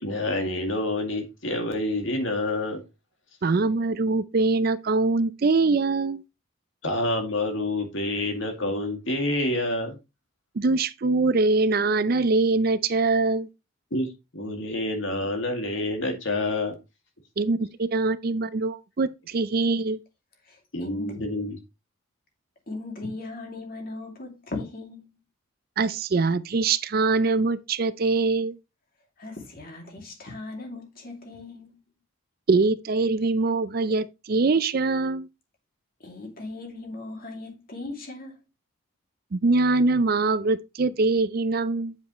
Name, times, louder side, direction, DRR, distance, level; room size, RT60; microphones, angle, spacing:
voice 1, 0.0-2.8 6.8-10.0 13.9-16.7 20.7-21.6, left 1 dB, 65° left, 2.2 m, -28 dB
voice 2, 3.4-6.2 10.6-13.5 17.4-20.0 25.8-28.5 32.5-35.3 39.3-42.0, right 3 dB, 45° right, 0.4 m, -23 dB
voice 3, 20.4-21.2 22.7-25.2 29.2-31.8 36.0-38.4, left 2 dB, 45° left, 2.6 m, -38 dB
8.3 x 7.3 x 3.1 m
head